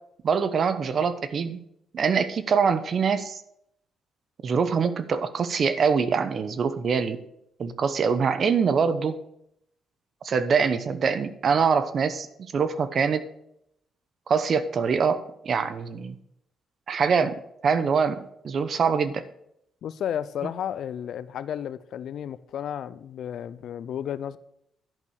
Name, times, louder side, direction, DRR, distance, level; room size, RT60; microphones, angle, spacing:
voice 1, 0.2-1.6 1.9-3.4 4.4-7.2 7.6-9.2 10.2-13.2 14.3-16.2 16.9-19.2, right 6 dB, 50° right, 0.8 m, -24 dB
voice 2, 19.8-24.4, left 9 dB, 70° left, 0.5 m, -32 dB
10.5 x 5.5 x 6.4 m
cardioid pair, 90°, 0 cm